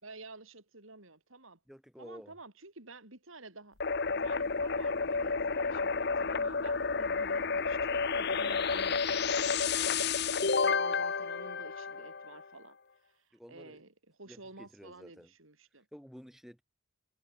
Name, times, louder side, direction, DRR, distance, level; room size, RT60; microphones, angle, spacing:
voice 1, 0.0-1.6 2.0-3.8 4.2-10.1 10.4-12.8 13.1-15.9, right 2 dB, 75° right, 4.7 m, -51 dB
voice 2, 1.7-2.3 13.3-13.8 14.3-15.3 15.9-16.6, equal, ahead, 5.8 m, -51 dB
sound 1, 3.8-12.4, left 5 dB, 50° left, 0.9 m, -31 dB
head